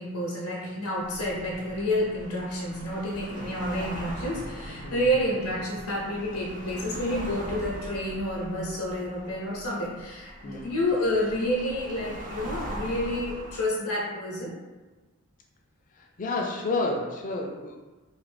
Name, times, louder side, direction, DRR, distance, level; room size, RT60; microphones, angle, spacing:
voice 1, 0.0-14.5, equal, 75° left, -3 dB, 0.7 m, -29 dB
sound 1, 1.0-13.6, right 1 dB, 35° right, 0.5 m, -41 dB
voice 2, 10.4-10.8 15.9-17.8, left 2 dB, 35° left, 1 dB, 0.4 m, -31 dB
2.7 x 2.5 x 3.3 m, 1.2 s
head